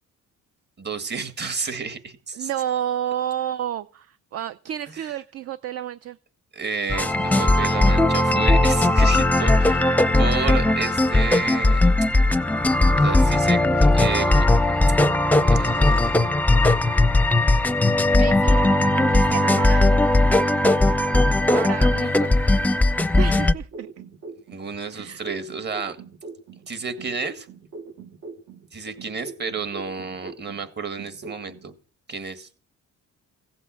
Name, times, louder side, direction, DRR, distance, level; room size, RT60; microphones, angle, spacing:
voice 1, 0.8-2.5 4.9-5.1 6.5-11.8 13.0-14.8 15.5-16.3 24.5-26.0 26.7-27.5 28.7-31.7 32.1-32.5, right 5 dB, 35° right, 9 dB, 1.8 m, -31 dB
voice 2, 2.4-6.2 18.2-18.6 19.1-20.0 21.5-22.3 23.1-23.9 24.9-25.2, right 10 dB, 55° right, 14 dB, 0.6 m, -30 dB
sound 1, 6.9-23.5, left 2 dB, 5° left, 0.6 m, -18 dB
sound 2, 23.7-26.7 27.0-30.7 31.0-31.7, right 4 dB, 70° right, 2.7 m, -41 dB
16.0 x 7.9 x 7.5 m, 0.40 s
wide cardioid pair, 165°, 30 cm